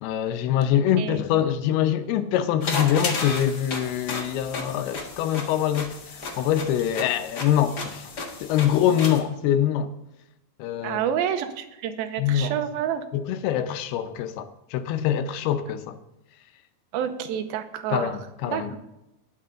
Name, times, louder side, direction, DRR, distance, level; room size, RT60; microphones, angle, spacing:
voice 1, 0.0-6.0 6.4-8.1 8.4-9.9 10.6-11.0 12.2-12.6 13.1-16.0 17.9-18.7, left 10 dB, 85° left, 2.8 m, -24 dB
voice 2, 1.0-1.4 9.0-9.1 10.8-13.0 16.9-18.1 18.5-18.7, right 9 dB, 80° right, 2.7 m, -29 dB
sound 1, 2.6-9.2, left 3 dB, 55° left, 1.1 m, -33 dB
19.0 x 6.6 x 3.8 m
omnidirectional pair, 4.4 m